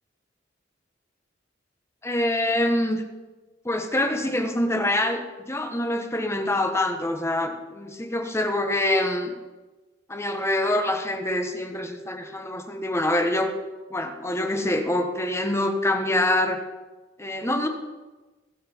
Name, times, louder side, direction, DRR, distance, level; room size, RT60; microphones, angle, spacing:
voice 1, 2.0-3.0 3.6-9.3 10.1-13.5 13.9-16.6 17.2-17.7, left 1 dB, 15° left, 5 dB, 1.2 m, -25 dB
20.0 x 7.7 x 4.6 m, 1.2 s
head